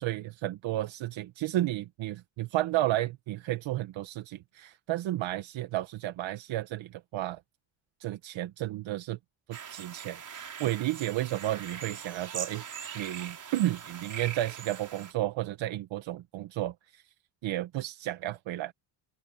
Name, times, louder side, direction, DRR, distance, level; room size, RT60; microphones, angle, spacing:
voice 1, 0.0-7.4 8.0-9.2 9.5-17.0 17.4-18.7, right 15 dB, 65° right, 1.2 m, -32 dB
sound 1, 9.5-15.1, right 7 dB, 40° right, 4.9 m, -41 dB
cardioid pair, 155°, 48 cm